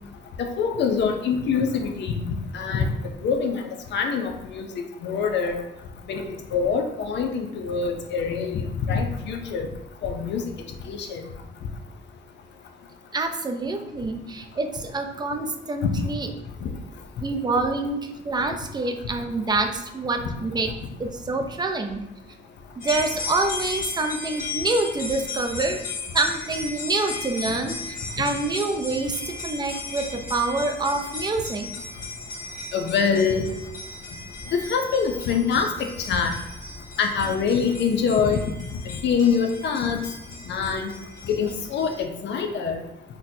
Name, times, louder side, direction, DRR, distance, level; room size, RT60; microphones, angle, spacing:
voice 1, 0.6-2.2 2.5-2.9 3.2-3.6 3.9-4.7 5.0-5.6 6.1-6.2 6.5-9.7 10.0-10.4 10.9-11.2 15.8-15.9 16.6-16.7 32.7-33.4 34.5-36.3 37.0-38.4 39.0-40.0 40.5-40.9 41.3-42.8, left 6 dB, 65° left, 4 dB, 0.5 m, -24 dB
voice 2, 13.1-16.3 17.2-20.7 21.0-22.0 22.8-25.8 26.1-31.7, right 3 dB, 20° right, 5 dB, 0.4 m, -26 dB
sound 1, 22.8-42.0, left 3 dB, 40° left, 1.1 m, -36 dB
4.1 x 2.2 x 2.6 m, 0.91 s
cardioid pair, 90°, 20 cm